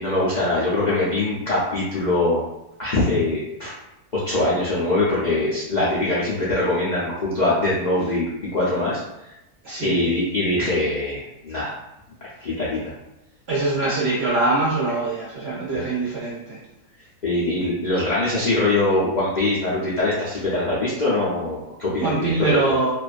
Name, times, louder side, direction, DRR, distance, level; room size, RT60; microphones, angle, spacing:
voice 1, 0.0-2.4 2.8-3.7 4.3-8.3 8.5-9.0 9.8-11.7 12.4-12.9 15.7-15.9 17.2-22.8, left 2 dB, 70° left, -8 dB, 0.4 m, -22 dB
voice 2, 9.6-10.1 13.5-16.6 22.0-22.9, right 3 dB, 65° right, -6 dB, 0.7 m, -23 dB
2.4 x 2.3 x 2.4 m, 0.90 s
omnidirectional pair, 1.6 m